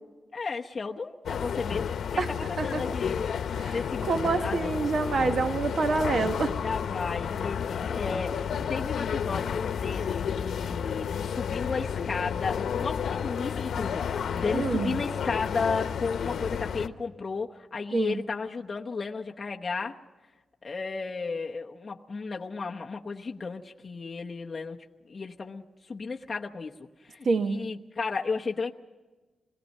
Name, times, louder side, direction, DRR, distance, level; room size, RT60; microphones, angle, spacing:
voice 1, 0.3-3.4 3.7-4.8 6.6-20.0 20.6-28.7, left 4 dB, 30° left, 0 dB, 1.0 m, -34 dB
sound 1, 1.3-16.9, left 7 dB, 85° left, 0.9 m, -31 dB
voice 2, 4.1-6.5 14.5-15.0 17.9-18.2 27.2-27.6, right 4 dB, 50° right, 8 dB, 1.0 m, -27 dB
26.5 x 20.5 x 5.5 m, 1.2 s
wide cardioid pair, 180°, 0 cm